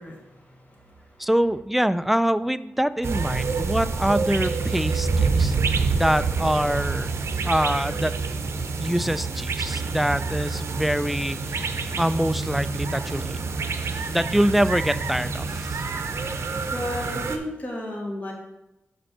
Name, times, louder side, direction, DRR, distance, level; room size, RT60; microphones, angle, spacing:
voice 1, 0.0-1.6 1.9-2.0 2.9-3.1 5.3-6.1 16.7-18.3, left 1 dB, 30° left, -2 dB, 2.2 m, -36 dB
voice 2, 1.2-5.5 5.9-7.1 7.4-8.2 8.8-13.4 14.1-15.8, equal, 5° right, 13 dB, 0.3 m, -25 dB
sound 1, 3.0-17.4, right 4 dB, 70° right, 0.7 m, -27 dB
5.1 x 4.5 x 6.1 m, 0.95 s
cardioid pair, 50°, 5 cm